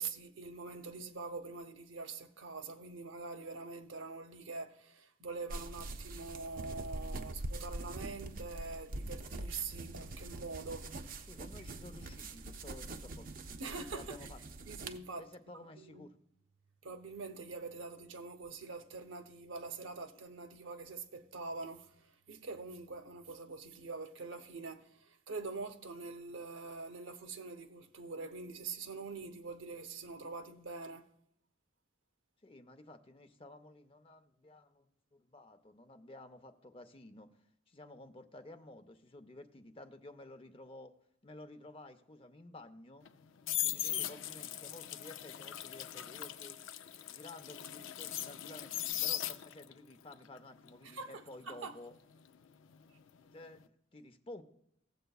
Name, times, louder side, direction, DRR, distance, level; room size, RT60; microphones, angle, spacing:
voice 1, 0.0-11.3 13.6-14.2 14.7-15.3 15.5-16.1 16.8-31.1 43.9-44.1 50.8-51.7, right 4 dB, 90° right, 0.8 m, -44 dB
sound 1, 5.5-15.0, right 2 dB, 45° right, 0.5 m, -44 dB
voice 2, 11.3-13.3 13.9-14.4 15.2-16.2 32.4-37.3 37.7-40.9 41.2-43.1 43.6-46.6 47.1-51.9 53.2-54.4, left 2 dB, 30° left, 0.6 m, -53 dB
sound 2, 43.0-49.8 50.1-53.0 53.3-53.6, left 12 dB, 85° left, 0.5 m, -39 dB
17.5 x 7.8 x 2.3 m
head